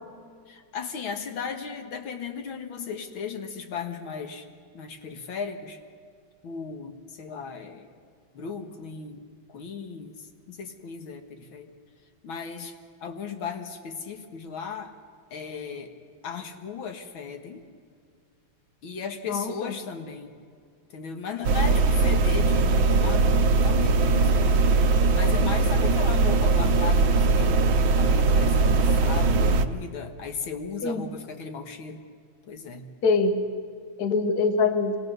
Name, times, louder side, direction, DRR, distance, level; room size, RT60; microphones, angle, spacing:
voice 1, 0.5-4.5 4.7-5.8 6.4-7.9 8.3-11.7 12.2-14.9 15.3-16.0 16.2-17.6 18.8-20.4 20.9-24.6 25.1-27.6 28.0-32.0 32.5-32.9, left 6 dB, 80° left, 5 dB, 2.1 m, -36 dB
voice 2, 19.3-19.7 30.8-31.1 33.0-33.4 34.0-35.0, left 4 dB, 55° left, 8 dB, 1.5 m, -24 dB
sound 1, 21.4-29.7, right 3 dB, 75° right, 1.6 m, -20 dB
26.0 x 19.5 x 6.7 m, 2.2 s
omnidirectional pair, 2.2 m